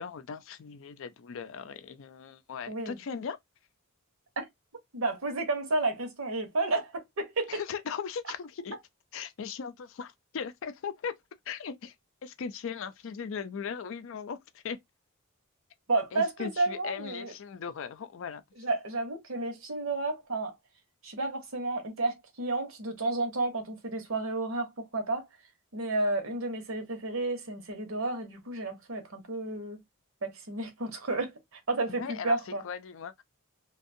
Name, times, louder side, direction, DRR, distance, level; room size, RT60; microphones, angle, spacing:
voice 1, 0.0-3.4 7.5-8.8 9.1-11.1 11.5-11.9 12.2-14.8 16.1-18.4 32.0-32.4 32.6-33.2, left 6 dB, 60° left, 0.4 m, -38 dB
voice 2, 2.7-3.0 4.4-4.5 4.9-7.6 15.9-17.3 18.6-20.5 21.0-25.3 25.7-29.8 30.2-32.6, right 2 dB, 65° right, 0.9 m, -31 dB
2.5 x 2.2 x 2.6 m
head